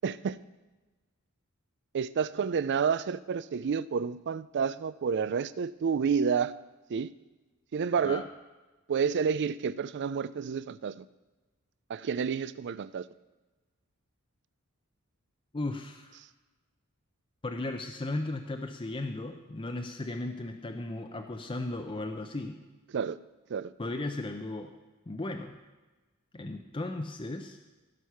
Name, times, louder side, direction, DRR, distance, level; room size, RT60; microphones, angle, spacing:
voice 1, 0.0-0.4 1.9-6.5 6.9-7.1 7.7-8.2 8.9-11.0 11.9-13.1 22.9-23.2 23.5-23.7, right 6 dB, 50° right, 17 dB, 0.4 m, -29 dB
voice 2, 15.5-16.2 17.4-22.6 23.8-24.7 25.1-25.6 26.3-27.6, left 2 dB, 25° left, 5 dB, 0.6 m, -36 dB
16.0 x 6.4 x 5.7 m, 1.2 s
head